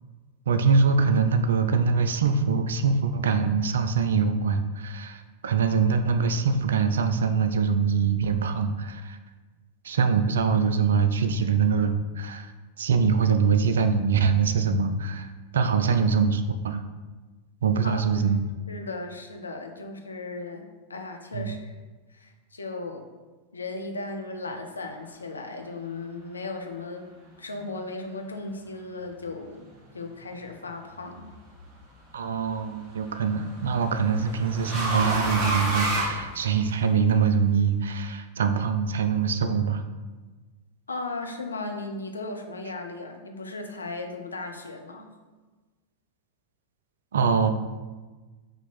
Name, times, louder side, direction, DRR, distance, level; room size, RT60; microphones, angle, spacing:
voice 1, 0.5-9.2 9.8-12.5 12.8-16.8 17.6-18.4 21.3-21.6 32.1-39.8 47.1-47.5, right 5 dB, 65° right, 9 dB, 0.3 m, -23 dB
voice 2, 15.8-16.2 17.8-18.3 18.7-20.6 20.9-21.8 22.1-23.1 23.5-27.1 27.4-29.6 29.9-31.3 40.9-45.1, left 3 dB, 75° left, 4 dB, 0.5 m, -36 dB
sound 1, 31.0-31.5 32.9-36.9, right 2 dB, 35° right, 1.0 m, -29 dB
4.4 x 2.7 x 4.1 m, 1.3 s
figure-of-eight pair, 90°, 0 cm